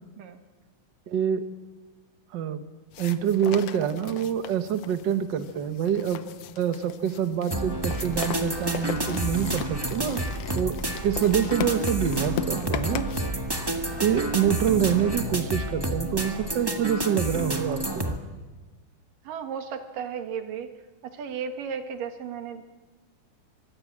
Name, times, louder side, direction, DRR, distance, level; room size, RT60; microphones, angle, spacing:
voice 1, 1.1-1.4 2.3-2.6 3.0-6.2 6.6-10.2 10.6-10.8 11.0-13.1 14.0-18.1, right 9 dB, 60° right, 9 dB, 1.2 m, -26 dB
sound 1, 2.9-13.3, left 10 dB, 70° left, 1.6 m, -38 dB
sound 2, 7.5-18.2, right 1 dB, 25° right, 0.5 m, -30 dB
sound 3, 8.1-16.8, left 2 dB, 25° left, 4.4 m, -39 dB
voice 2, 19.2-20.7 21.0-22.6, right 7 dB, 90° right, 6 dB, 3.3 m, -34 dB
25.0 x 21.0 x 7.5 m, 1.3 s
omnidirectional pair, 3.7 m